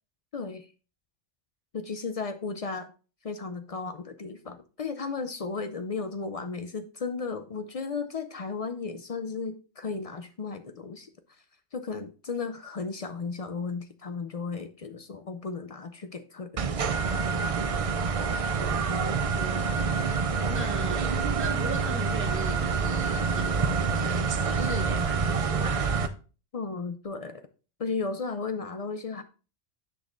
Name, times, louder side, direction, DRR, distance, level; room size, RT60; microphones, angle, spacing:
voice 1, 0.3-0.7 1.7-2.9 3.2-11.4 11.7-16.9 26.5-27.5 27.8-29.2, left 4 dB, 55° left, 9 dB, 0.4 m, -35 dB
sound 1, 16.6-26.1, right 5 dB, 45° right, 0.4 m, -27 dB
voice 2, 19.4-20.0 20.5-21.1 21.4-25.7, right 2 dB, 10° right, 3 dB, 0.9 m, -39 dB
10.0 x 6.1 x 2.4 m, 0.35 s
omnidirectional pair, 1.2 m